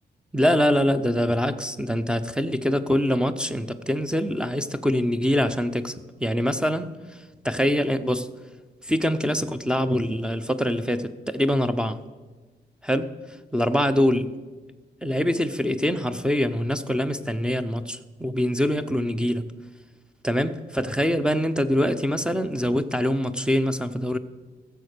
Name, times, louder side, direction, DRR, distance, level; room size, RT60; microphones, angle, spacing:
voice 1, 0.3-5.9 6.2-6.9 7.4-8.3 8.8-12.0 12.9-13.1 13.5-14.3 15.0-19.5 20.2-24.2, equal, 5° right, 0.5 m, -24 dB
15.5 x 7.2 x 6.6 m
wide cardioid pair, 145°, 19 cm